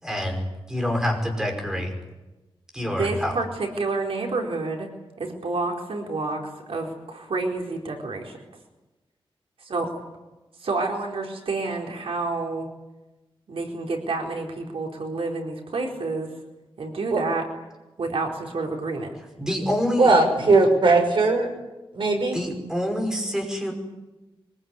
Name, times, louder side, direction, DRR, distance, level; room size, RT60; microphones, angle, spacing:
voice 1, 0.0-1.9 2.7-3.4 19.4-20.1 20.4-20.5 22.3-23.7, left 1 dB, 5° right, 2 dB, 5.6 m, -27 dB
voice 2, 2.8-4.9 5.2-6.4 6.7-8.4 9.6-9.9 10.6-12.7 13.5-16.3 16.8-17.5 18.0-19.1, right 3 dB, 80° right, 1 dB, 4.3 m, -29 dB
voice 3, 20.0-21.5 21.9-22.4, right 3 dB, 60° right, 3 dB, 6.4 m, -18 dB
24.0 x 22.5 x 9.8 m, 1.1 s
wide cardioid pair, 180°, 10 cm